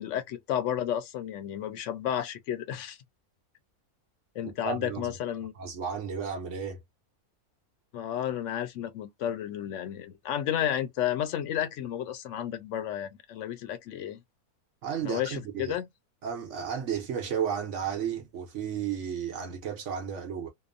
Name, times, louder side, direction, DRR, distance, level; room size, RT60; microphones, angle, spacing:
voice 1, 0.0-3.0 4.4-5.5 7.9-14.2 15.0-15.9, left 10 dB, 65° left, 0.8 m, -32 dB
voice 2, 4.6-5.2 5.5-6.8 14.8-15.8 16.2-20.5, right 7 dB, 60° right, 0.9 m, -33 dB
2.9 x 2.0 x 2.4 m
omnidirectional pair, 1.6 m